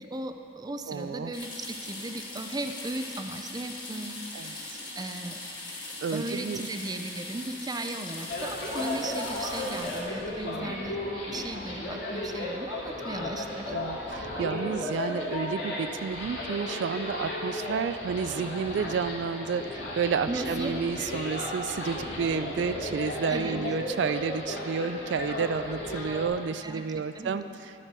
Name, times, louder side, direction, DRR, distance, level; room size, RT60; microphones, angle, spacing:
voice 1, 0.0-5.4 6.1-11.0 11.3-13.7 20.3-20.7 23.3-23.6 26.6-26.8 27.2-27.4, right 2 dB, 20° right, 6 dB, 0.5 m, -36 dB
voice 2, 0.9-1.3 4.3-4.5 6.0-6.7 10.4-10.8 13.7-27.5, right 6 dB, 75° right, 11 dB, 0.3 m, -31 dB
sound 1, 1.3-10.0, left 2 dB, 25° left, 2.5 m, -40 dB
sound 2, 8.3-26.3, left 1 dB, 75° left, 2.2 m, -34 dB
13.0 x 5.1 x 6.7 m, 2.8 s
head